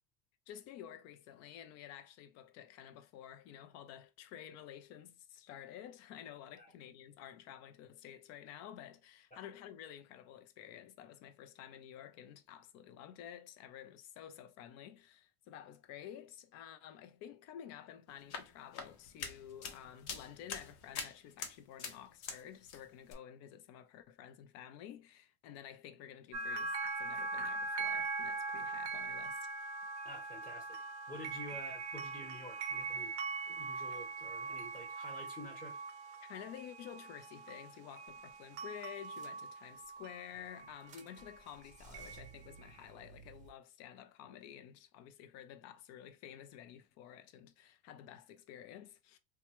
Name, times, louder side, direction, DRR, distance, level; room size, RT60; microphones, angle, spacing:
voice 1, 0.5-29.7 36.2-49.2, left 10 dB, 50° left, 0.6 m, -51 dB
sound 1, 18.1-22.4 22.7-23.1, left 6 dB, 75° left, 0.9 m, -45 dB
sound 2, 26.3-41.4 41.9-42.3, right 3 dB, 90° right, 0.6 m, -41 dB
voice 2, 30.0-33.1 33.5-35.8, left 1 dB, 15° left, 1.1 m, -50 dB
sound 3, 38.1-38.3 38.6-38.7 39.0-39.8 40.3-43.5, right 5 dB, 20° right, 0.6 m, -58 dB
2.8 x 2.2 x 3.0 m
supercardioid pair, 120°, 34 cm